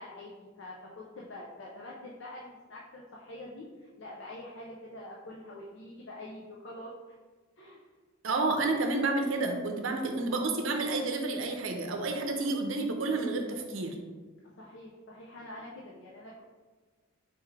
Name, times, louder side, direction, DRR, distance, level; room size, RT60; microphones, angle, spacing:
voice 1, 0.0-6.9 7.6-7.8 14.6-16.4, left 1 dB, 60° left, -4 dB, 0.5 m, -45 dB
voice 2, 8.2-14.0, right 3 dB, 70° right, 3 dB, 0.6 m, -30 dB
4.5 x 3.5 x 3.2 m, 1.4 s
head